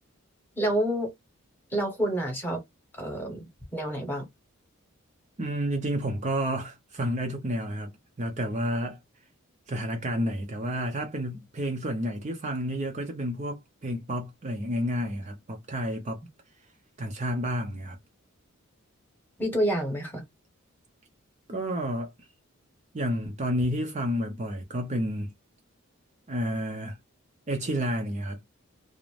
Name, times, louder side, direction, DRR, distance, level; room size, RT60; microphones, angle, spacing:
voice 1, 0.6-1.1 1.7-2.6 3.0-3.4 3.7-4.3 19.4-20.2, right 1 dB, 10° left, 1.0 m, -28 dB
voice 2, 5.4-7.9 8.2-9.0 9.7-16.2 17.0-18.0 21.5-22.1 22.9-25.3 26.3-27.0 27.5-28.4, equal, 35° right, 0.5 m, -30 dB
2.5 x 2.1 x 3.1 m
head